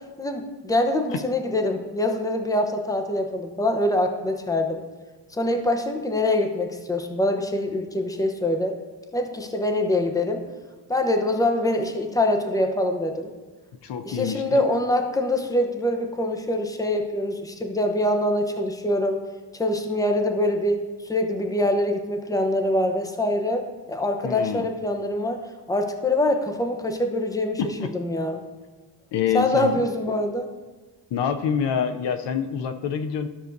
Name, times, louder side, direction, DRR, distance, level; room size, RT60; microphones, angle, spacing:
voice 1, 0.2-4.8 5.3-8.7 9.1-10.4 10.9-13.3 14.0-19.2 19.6-25.4 25.7-28.4 29.3-30.5, left 1 dB, 10° left, 4 dB, 0.8 m, -24 dB
voice 2, 13.8-14.6 24.2-24.7 27.6-27.9 29.1-29.8 31.1-33.3, left 7 dB, 70° left, 8 dB, 0.7 m, -26 dB
13.0 x 6.3 x 2.7 m, 1.3 s
cardioid pair, 95°, 44 cm